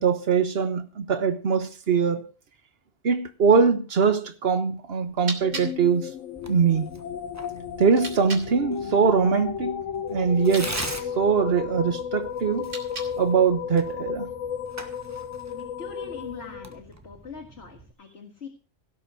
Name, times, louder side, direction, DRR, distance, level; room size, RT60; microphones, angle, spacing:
voice 1, 0.0-2.3 3.0-6.1 6.5-6.9 7.8-9.8 10.1-10.7 11.2-12.7 13.2-14.3, right 6 dB, 55° right, 1.4 m, -22 dB
sound 1, 4.9-8.5 10.3-11.0 12.5-13.4, right 2 dB, 85° right, 3.4 m, -40 dB
sound 2, 5.4-16.8, left 8 dB, 90° left, 1.1 m, -34 dB
Tearing, 6.3-17.9, right 1 dB, 15° right, 1.3 m, -42 dB
voice 2, 15.5-18.5, left 4 dB, 60° left, 2.0 m, -42 dB
17.0 x 6.3 x 6.3 m
omnidirectional pair, 1.2 m